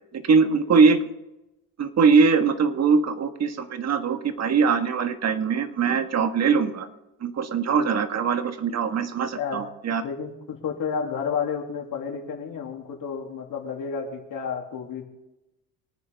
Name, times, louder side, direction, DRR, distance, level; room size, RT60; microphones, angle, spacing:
voice 1, 0.1-1.0 1.8-6.9 7.2-10.0, right 5 dB, 45° right, 8 dB, 1.5 m, -22 dB
voice 2, 10.0-15.0, left 6 dB, 60° left, 1 dB, 2.7 m, -31 dB
23.5 x 9.5 x 3.5 m, 0.94 s
cardioid pair, 100°, 36 cm